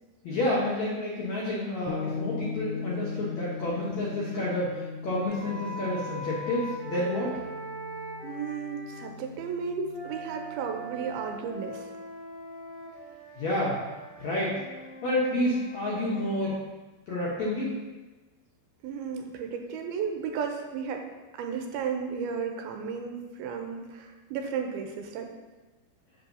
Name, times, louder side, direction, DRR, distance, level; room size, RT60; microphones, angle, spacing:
voice 1, 0.2-7.3 13.4-13.8 14.2-14.6 15.0-16.6 17.1-17.7, left 1 dB, 70° left, -6 dB, 1.8 m, -29 dB
sound 1, 1.9-11.5, left 5 dB, 85° left, 2.6 m, -39 dB
sound 2, 5.2-9.1 9.9-16.4, right 2 dB, 25° left, 1.3 m, -41 dB
voice 2, 8.2-11.9 18.8-21.1 21.3-25.3, right 6 dB, 85° right, 4 dB, 2.4 m, -34 dB
7.5 x 7.2 x 2.7 m, 1.2 s
omnidirectional pair, 4.5 m